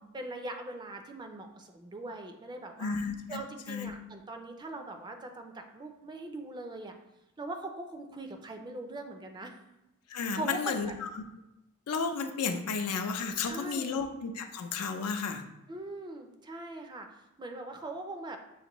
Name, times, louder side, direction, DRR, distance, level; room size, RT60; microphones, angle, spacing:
voice 1, 0.1-3.0 3.3-7.0 7.4-9.5 10.3-10.9 13.4-14.0 15.7-18.4, right 2 dB, 20° right, 4 dB, 0.4 m, -41 dB
voice 2, 2.8-3.9 10.1-11.2 11.9-15.4, left 5 dB, 80° left, 6 dB, 0.5 m, -33 dB
6.4 x 2.5 x 2.9 m, 0.90 s
head